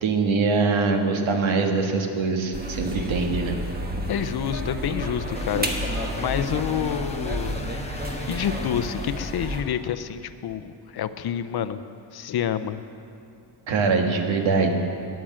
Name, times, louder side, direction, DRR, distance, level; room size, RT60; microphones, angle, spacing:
voice 1, 0.0-3.6 13.7-14.7, right 4 dB, 80° right, 4 dB, 1.6 m, -23 dB
sound 1, 2.5-9.6, equal, 20° right, 1.3 m, -31 dB
voice 2, 4.1-5.7 6.2-7.6 8.3-11.8 12.1-12.8, left 9 dB, 55° left, 12 dB, 0.6 m, -28 dB
sound 2, 5.4-9.9, left 3 dB, 15° left, 0.6 m, -40 dB
14.0 x 10.0 x 7.5 m, 2.6 s
wide cardioid pair, 170°, 46 cm